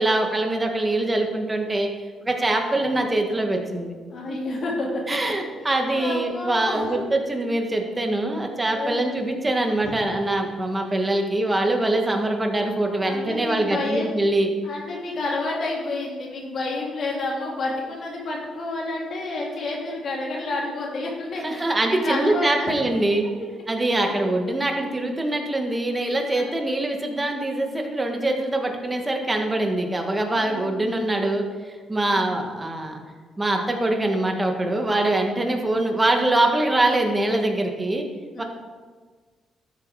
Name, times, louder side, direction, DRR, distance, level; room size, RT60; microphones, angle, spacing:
voice 1, 0.0-1.9 2.2-3.9 4.3-4.4 5.1-14.5 21.4-23.2 23.7-33.0 33.4-38.1 38.4-38.5, right 2 dB, 20° right, 3 dB, 1.9 m, -23 dB
voice 2, 4.1-4.9 5.6-7.0 8.7-9.0 9.8-10.1 13.0-14.3 14.6-22.8 24.0-24.1 26.3-26.6 30.3-30.7 32.1-32.4 38.3-38.4, left 2 dB, 55° left, -3 dB, 2.7 m, -30 dB
12.5 x 7.9 x 4.9 m, 1.5 s
cardioid pair, 90°, 0 cm